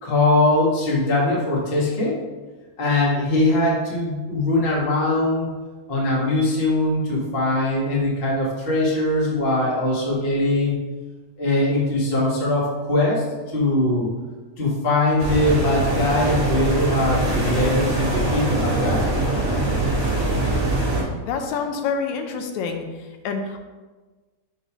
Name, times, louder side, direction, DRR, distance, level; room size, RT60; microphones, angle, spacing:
voice 1, 0.0-2.1 2.8-5.5 5.9-10.8 11.4-13.2 13.5-14.1 14.6-19.1, left 2 dB, 45° left, -4 dB, 0.7 m, -21 dB
sound 1, 15.2-21.0, right 2 dB, 15° right, 1.5 m, -22 dB
voice 2, 21.2-22.9 23.2-23.6, left 5 dB, 80° left, 5 dB, 1.9 m, -27 dB
6.5 x 3.1 x 4.9 m, 1.3 s
omnidirectional pair, 3.3 m